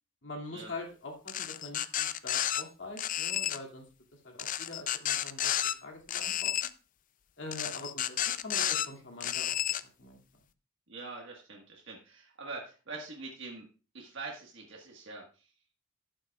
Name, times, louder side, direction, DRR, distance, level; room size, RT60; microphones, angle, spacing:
voice 1, 0.2-3.8 4.2-5.5 5.8-6.5 7.4-9.6 10.0-10.2, left 2 dB, 65° left, 1 dB, 2.5 m, -44 dB
sound 1, 1.3-2.6 3.0-3.6 4.4-5.7 6.1-6.7 7.5-8.9 9.2-9.8, left 11 dB, 45° left, 0.4 m, -31 dB
voice 2, 10.9-13.7 13.9-15.5, right 3 dB, 65° right, 0 dB, 1.6 m, -44 dB
13.5 x 7.7 x 2.4 m, 0.34 s
head